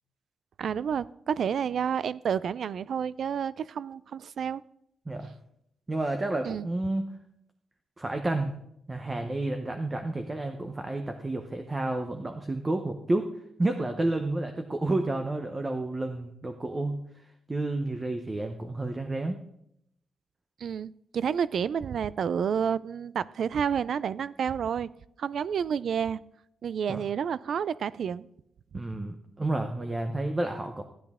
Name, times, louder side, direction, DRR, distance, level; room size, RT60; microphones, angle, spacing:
voice 1, 0.6-4.6 6.5-6.7 20.6-24.9 25.2-26.2 26.6-28.3, right 7 dB, 55° right, 18 dB, 0.4 m, -30 dB
voice 2, 5.9-7.1 8.0-8.5 8.9-13.3 13.6-17.0 17.5-19.4 26.9-27.0 28.7-30.8, right 2 dB, 15° right, 6 dB, 0.7 m, -30 dB
15.5 x 10.0 x 3.6 m, 0.76 s
wide cardioid pair, 175°, 0 cm